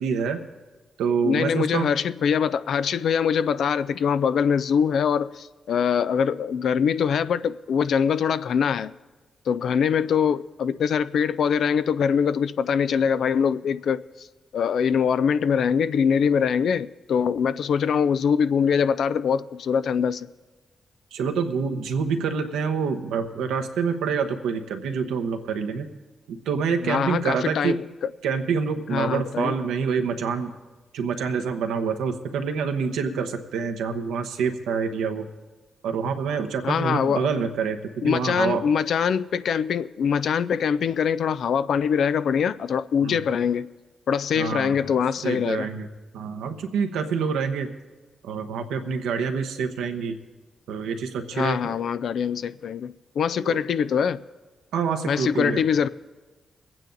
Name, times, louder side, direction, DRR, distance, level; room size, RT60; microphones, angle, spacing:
voice 1, 0.0-0.4 1.0-1.9 21.1-25.9 26.3-27.8 28.2-30.5 30.9-35.3 35.8-38.6 43.0-43.2 44.3-44.7 45.2-45.9 46.1-47.7 48.2-50.2 50.7-51.7 53.4-53.6 54.7-55.6, right 6 dB, 85° right, 1.0 m, -26 dB
voice 2, 1.2-8.9 9.5-14.3 14.5-20.3 26.8-28.1 28.9-29.5 36.6-37.3 38.0-43.7 44.1-45.7 51.3-54.2 55.1-55.9, left 7 dB, 75° left, 0.4 m, -23 dB
22.0 x 9.0 x 3.9 m
supercardioid pair, 45°, 0 cm